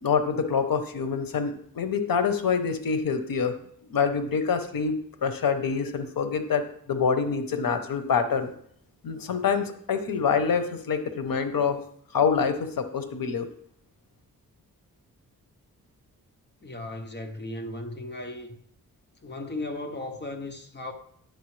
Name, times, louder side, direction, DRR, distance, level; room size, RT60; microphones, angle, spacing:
voice 1, 0.0-3.5 3.9-5.0 5.2-8.5 9.0-11.8 12.1-13.5, left 6 dB, 75° left, 0.9 m, -26 dB
voice 2, 16.6-18.6 19.2-20.9, left 2 dB, 30° left, 0.9 m, -36 dB
10.0 x 6.6 x 3.2 m
wide cardioid pair, 160°, 35 cm